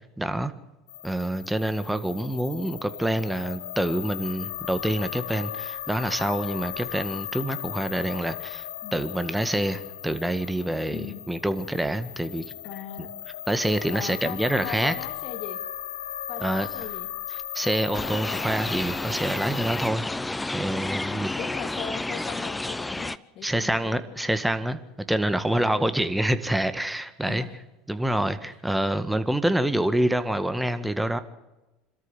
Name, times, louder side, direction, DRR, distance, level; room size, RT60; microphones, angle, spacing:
voice 1, 0.2-0.5 1.0-8.6 8.9-12.4 13.5-14.9 16.4-16.7 17.5-21.3 23.4-24.8 25.1-27.4 27.9-31.2, right 1 dB, 5° right, 11 dB, 1.8 m, -26 dB
sound 1, 0.9-19.9, left 12 dB, 75° left, 1.2 m, -37 dB
voice 2, 10.9-11.2 12.6-13.1 13.9-15.6 16.3-17.1 21.1-24.0 25.5-25.9 27.2-27.6, left 9 dB, 50° left, 7 dB, 2.1 m, -39 dB
sound 2, 17.9-23.2, left 2 dB, 10° left, 0.7 m, -31 dB
26.5 x 13.5 x 8.1 m, 1.0 s
hypercardioid pair, 75°, 0 cm